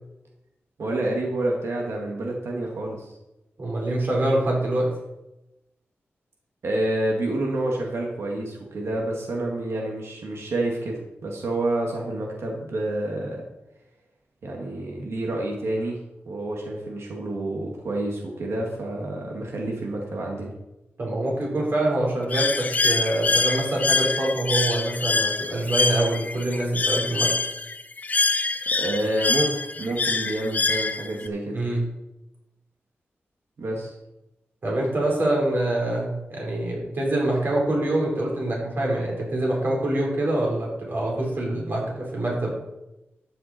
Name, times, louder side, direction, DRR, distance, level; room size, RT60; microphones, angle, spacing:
voice 1, 0.8-3.1 6.6-13.4 14.4-16.0 16.3-20.5 28.7-31.6 33.6-33.9, right 1 dB, 75° right, -1 dB, 2.0 m, -28 dB
voice 2, 3.6-4.9 21.0-27.3 31.5-31.8 34.6-42.5, right 1 dB, 50° right, -3 dB, 4.4 m, -25 dB
Bird, 22.3-31.3, left 3 dB, 35° left, 0.7 m, -25 dB
13.5 x 8.1 x 4.4 m, 0.95 s
wide cardioid pair, 150°, 4 cm